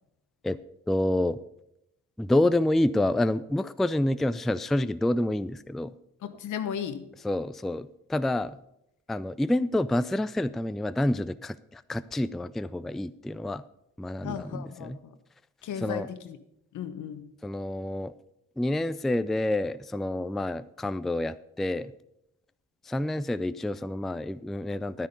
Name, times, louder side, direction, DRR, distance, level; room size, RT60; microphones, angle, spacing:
voice 1, 0.9-1.4 2.2-5.9 7.2-8.6 9.1-13.6 14.0-15.0 15.8-16.1 17.4-18.1 18.6-21.9 22.8-25.1, left 1 dB, ahead, 14 dB, 0.3 m, -28 dB
voice 2, 6.2-7.1 14.2-15.2 15.6-16.4 16.7-17.3, left 8 dB, 75° left, 10 dB, 1.2 m, -35 dB
10.5 x 10.0 x 5.3 m, 0.80 s
cardioid pair, 90°, 30 cm